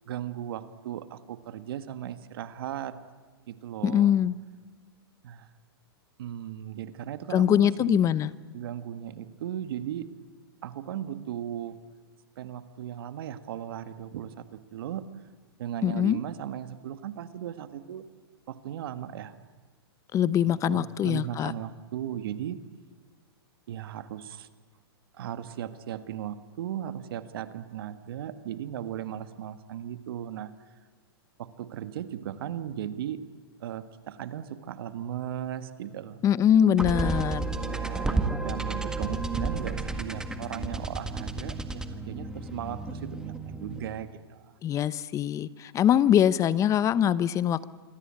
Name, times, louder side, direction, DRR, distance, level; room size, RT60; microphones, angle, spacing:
voice 1, 0.0-3.0 3.5-4.2 5.2-5.5 6.2-8.0 8.5-10.1 10.6-11.8 12.4-15.0 15.6-18.1 18.5-19.3 20.3-22.6 23.7-24.5 25.1-30.5 31.4-33.2 33.6-36.2 37.5-44.6, right 10 dB, 65° right, 11 dB, 1.6 m, -37 dB
voice 2, 3.8-4.3 7.3-8.3 15.8-16.2 20.1-21.5 36.2-37.5 44.6-47.7, left 10 dB, 25° left, 18 dB, 0.8 m, -23 dB
sound 1, 36.8-44.1, right 3 dB, 5° right, 1.7 m, -32 dB
27.0 x 22.5 x 8.8 m, 1.3 s
hypercardioid pair, 130°, 13 cm